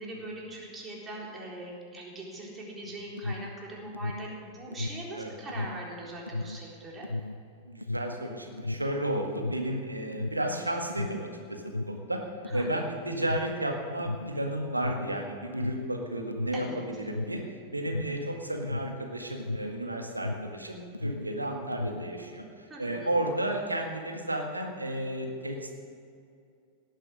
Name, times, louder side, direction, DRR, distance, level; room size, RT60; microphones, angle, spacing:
voice 1, 0.0-7.1 12.5-12.8 16.5-16.8 22.7-23.1, right 1 dB, 20° right, -3 dB, 3.8 m, -41 dB
Alarm, 2.8-20.6 20.9-22.2, left 2 dB, 85° left, 0.3 m, -36 dB
voice 2, 7.7-12.2 12.5-17.4 17.7-25.8, right 1 dB, 85° right, 2 dB, 1.8 m, -33 dB
17.5 x 9.0 x 6.5 m, 2.3 s
figure-of-eight pair, 90°, 0 cm